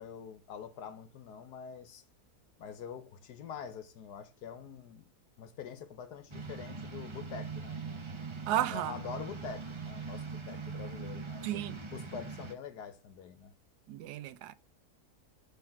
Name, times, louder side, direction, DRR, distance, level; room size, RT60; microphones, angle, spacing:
voice 1, 0.0-2.0 2.6-5.1 5.4-8.0 8.5-11.5 11.9-13.5, left 7 dB, 85° left, 1.4 m, -45 dB
sound 1, 6.3-12.5, right 4 dB, 40° right, 0.4 m, -42 dB
voice 2, 8.5-8.9 11.4-11.8 13.9-14.5, right 13 dB, 80° right, 1.1 m, -33 dB
5.7 x 3.4 x 5.8 m
omnidirectional pair, 1.7 m